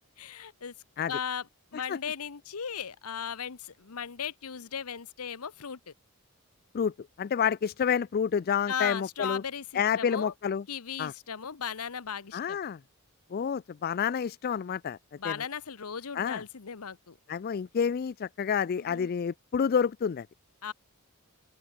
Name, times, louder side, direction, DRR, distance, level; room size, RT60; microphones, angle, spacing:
voice 1, 0.2-0.7 1.1-5.9 8.7-10.3 10.7-12.6 15.2-17.2 18.8-19.1 20.6-20.7, left 7 dB, 85° left, 0.9 m, -37 dB
voice 2, 6.7-9.4 9.7-10.6 11.0-11.1 12.3-12.8 13.3-15.0 15.2-15.3 16.2-16.4 17.3-20.3, left 7 dB, 45° left, 0.3 m, -29 dB
open air
head